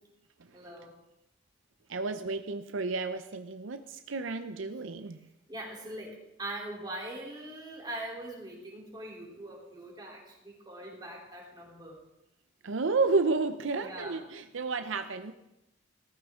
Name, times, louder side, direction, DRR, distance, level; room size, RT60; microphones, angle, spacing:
voice 1, 0.5-0.9 5.5-12.0 13.8-14.2, right 1 dB, 20° right, -3 dB, 3.6 m, -42 dB
voice 2, 1.9-5.2 12.6-15.3, right 3 dB, 80° right, 8 dB, 0.7 m, -31 dB
15.5 x 14.0 x 3.8 m, 0.89 s
head